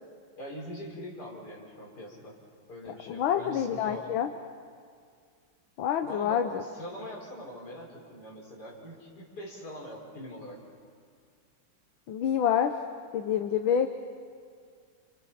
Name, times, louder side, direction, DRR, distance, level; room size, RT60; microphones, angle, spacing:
voice 1, 0.4-2.4 2.7-4.1 6.0-10.6, equal, 50° left, -2 dB, 5.8 m, -43 dB
voice 2, 3.1-4.3 5.8-6.6 12.1-12.7 13.1-13.9, left 9 dB, 75° left, 6 dB, 1.7 m, -27 dB
29.5 x 29.5 x 5.8 m, 2.1 s
omnidirectional pair, 2.3 m